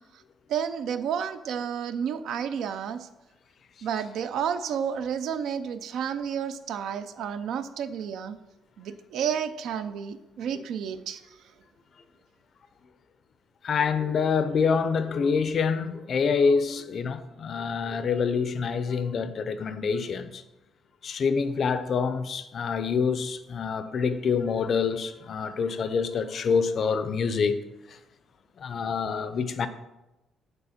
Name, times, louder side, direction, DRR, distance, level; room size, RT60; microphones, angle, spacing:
voice 1, 0.5-3.1 3.8-8.4 8.8-11.2, right 8 dB, 70° right, 0.5 m, -31 dB
voice 2, 13.6-20.4 21.0-27.6 27.9-28.0 28.6-29.7, left 5 dB, 45° left, 0.5 m, -26 dB
6.9 x 4.2 x 5.7 m
cardioid pair, 140°, 0 cm